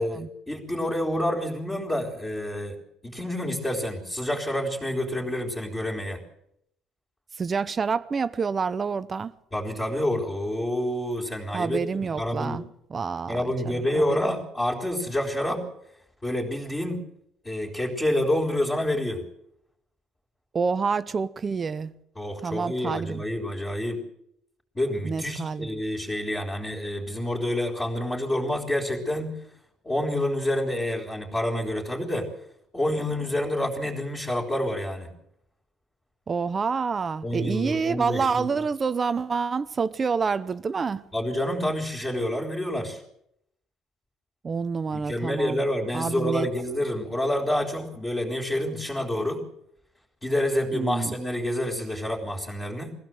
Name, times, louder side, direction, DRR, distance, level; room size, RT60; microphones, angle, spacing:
voice 1, 0.0-2.8 3.0-6.2 9.5-11.8 12.2-12.6 13.3-15.6 16.2-17.0 17.4-19.2 22.1-24.0 24.7-29.4 29.8-32.3 32.7-35.1 37.2-38.5 41.1-43.0 44.9-49.5 50.2-52.9, left 1 dB, 15° left, 3.6 m, -28 dB
voice 2, 7.4-9.3 11.5-12.6 12.9-13.4 13.6-14.2 20.5-21.9 22.4-23.2 25.0-25.8 36.3-41.0 44.4-45.6 45.9-46.5 50.7-51.1, right 5 dB, 25° right, 0.7 m, -28 dB
22.5 x 16.0 x 7.7 m
cardioid pair, 160°, 0 cm